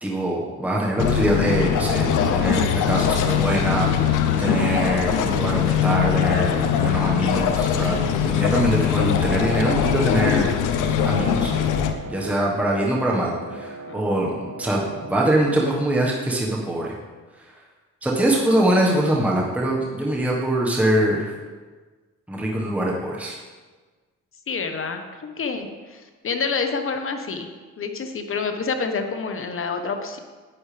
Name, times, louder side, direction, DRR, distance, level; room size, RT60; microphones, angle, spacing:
voice 1, 0.0-7.9 8.2-11.5 12.0-17.0 18.0-21.3 22.3-23.4, right 1 dB, 5° right, -3 dB, 1.4 m, -23 dB
sound 1, 1.0-11.9, left 8 dB, 85° left, 0.8 m, -21 dB
Wind instrument woodwind instrument, 10.0-15.4, right 3 dB, 55° right, 1.7 m, -38 dB
voice 2, 24.5-25.0 25.4-27.5 27.8-30.2, left 5 dB, 45° left, 6 dB, 1.2 m, -28 dB
10.5 x 9.1 x 3.4 m, 1.4 s
cardioid pair, 90°, 30 cm